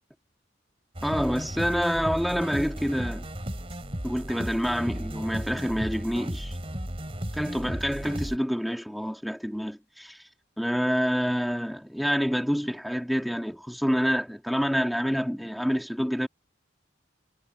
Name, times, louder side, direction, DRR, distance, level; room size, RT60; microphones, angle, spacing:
sound 1, 0.9-8.4, equal, 30° right, 3.8 m, -35 dB
voice 1, 1.0-3.3 4.0-6.6 7.3-10.2 10.6-16.3, equal, ahead, 2.3 m, -27 dB
head